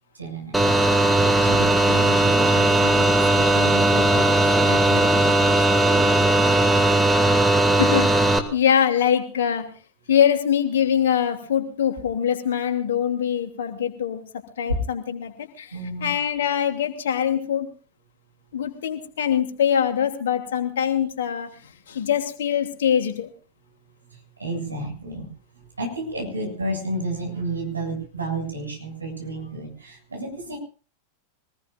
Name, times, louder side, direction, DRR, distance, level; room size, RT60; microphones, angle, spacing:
voice 1, 0.1-0.6 1.3-6.2 15.7-16.1 24.1-30.6, right 2 dB, 80° right, 3 dB, 7.3 m, -32 dB
sound 1, 0.5-8.4, right 2 dB, 5° right, 2.3 m, -18 dB
voice 2, 7.8-8.1 8.5-9.7 10.1-14.2 14.6-17.7 18.5-23.3, left 9 dB, 60° left, 6 dB, 2.8 m, -23 dB
25.0 x 19.5 x 2.5 m, 0.38 s
figure-of-eight pair, 90°, 0 cm